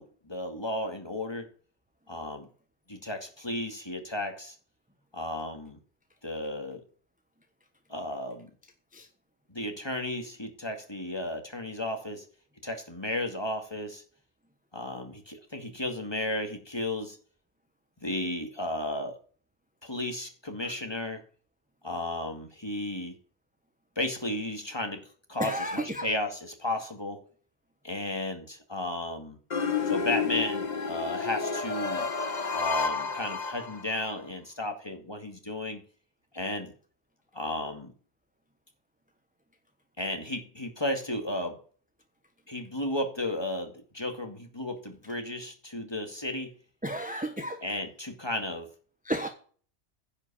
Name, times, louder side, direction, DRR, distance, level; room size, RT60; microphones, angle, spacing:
voice 1, 0.0-1.5 2.1-2.5 2.9-4.6 5.1-5.8 6.2-6.8 7.9-8.5 9.5-12.2 12.6-14.0 14.7-17.2 18.0-19.2 19.8-21.2 21.8-23.2 24.0-25.0 25.3-27.2 27.8-29.4 29.9-32.1 32.5-35.8 36.3-36.7 37.3-37.9 40.0-41.6 42.5-46.5 47.6-48.7, left 1 dB, 20° left, 4 dB, 2.2 m, -34 dB
voice 2, 25.4-26.1 46.8-47.6 49.0-49.3, right 1 dB, 10° right, 6 dB, 1.1 m, -32 dB
sound 1, 29.5-34.1, left 5 dB, 40° left, 1.1 m, -30 dB
10.5 x 5.5 x 8.5 m, 0.42 s
omnidirectional pair, 1.2 m